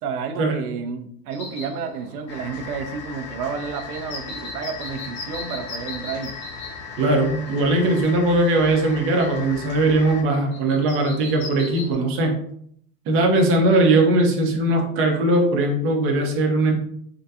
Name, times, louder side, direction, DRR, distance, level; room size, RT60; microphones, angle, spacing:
voice 1, 0.0-6.3, right 5 dB, 70° right, 6 dB, 0.7 m, -31 dB
sound 1, 1.3-11.9, left 2 dB, 45° left, 1.3 m, -40 dB
sound 2, 2.3-10.2, left 5 dB, 30° left, 0.4 m, -37 dB
voice 2, 7.0-12.4 13.1-16.7, right 2 dB, 25° right, 1 dB, 0.7 m, -19 dB
3.5 x 2.3 x 2.7 m, 0.67 s
hypercardioid pair, 125°, 48 cm